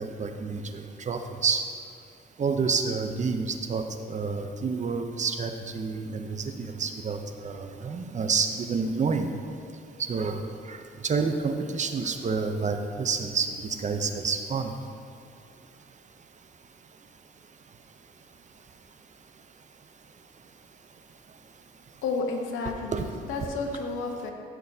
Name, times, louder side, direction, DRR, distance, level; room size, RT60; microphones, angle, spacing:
voice 1, 0.0-1.7 2.4-9.3 10.0-14.8 22.9-23.1, right 5 dB, 35° right, 6 dB, 0.7 m, -29 dB
voice 2, 22.0-24.3, left 3 dB, 85° left, 2 dB, 1.1 m, -31 dB
13.5 x 6.2 x 2.8 m, 2.4 s
cardioid pair, 90°, 20 cm